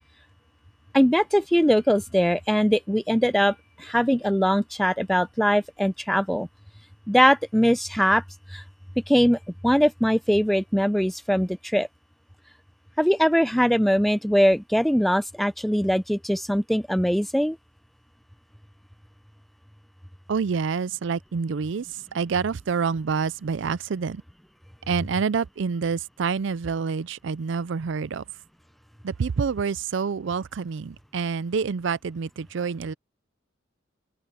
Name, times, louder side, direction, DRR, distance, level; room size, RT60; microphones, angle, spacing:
voice 1, 0.9-6.5 7.1-8.2 8.5-8.6 9.1-11.9 13.0-17.6, equal, ahead, 0.4 m, -21 dB
voice 2, 20.3-24.2 24.9-28.2 29.0-32.9, right 5 dB, 70° right, 0.4 m, -27 dB
open air
head